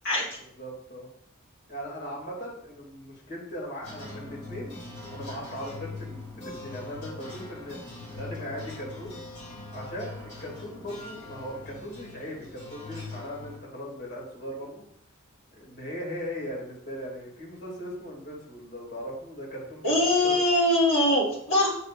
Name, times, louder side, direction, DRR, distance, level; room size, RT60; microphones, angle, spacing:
voice 1, 0.6-1.1 1.7-4.8 5.1-7.8 8.1-9.2 9.7-14.8 15.5-20.4, equal, 50° left, -3 dB, 2.4 m, -38 dB
sound 1, 3.8-13.6, left 2 dB, 35° left, 2.5 m, -42 dB
voice 2, 19.8-21.7, left 1 dB, 70° left, -4 dB, 2.5 m, -22 dB
7.7 x 5.5 x 2.5 m, 0.68 s
head